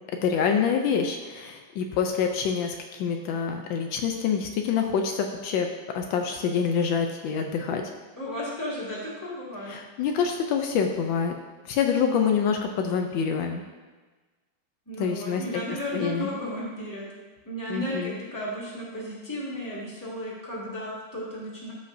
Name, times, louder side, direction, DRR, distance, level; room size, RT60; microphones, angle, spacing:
voice 1, 0.2-5.7 5.9-7.8 9.7-11.3 11.6-13.6 15.0-15.4 15.9-16.3 17.7-18.2, left 6 dB, 80° left, 4 dB, 1.3 m, -26 dB
voice 2, 8.2-9.8 14.9-17.0 17.5-21.7, equal, 10° left, -7 dB, 2.1 m, -34 dB
13.5 x 5.3 x 2.6 m, 1.3 s
omnidirectional pair, 2.1 m